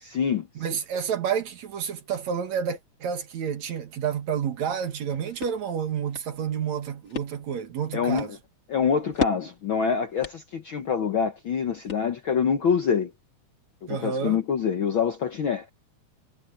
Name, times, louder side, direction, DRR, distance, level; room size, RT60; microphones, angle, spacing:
voice 1, 0.0-0.5 7.9-8.4 8.7-13.1 13.8-15.7, left 6 dB, 60° left, 1.4 m, -25 dB
voice 2, 0.6-8.3 13.9-14.4, right 7 dB, 65° right, 2.9 m, -29 dB
sound 1, 4.9-12.5, left 6 dB, 40° left, 1.0 m, -38 dB
omnidirectional pair, 3.6 m